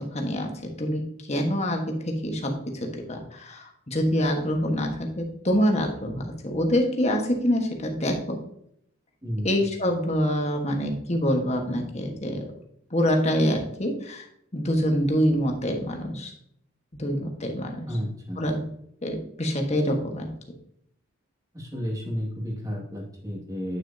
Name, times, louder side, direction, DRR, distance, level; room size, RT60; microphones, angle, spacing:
voice 1, 0.0-8.4 9.4-12.4 12.9-14.3 14.5-16.3 16.9-17.9 18.4-18.7 19.0-20.3, equal, 30° left, 2 dB, 1.4 m, -26 dB
voice 2, 9.2-9.6 17.9-18.4 21.5-23.8, equal, 15° right, -1 dB, 2.1 m, -32 dB
9.6 x 6.3 x 2.8 m, 0.70 s
head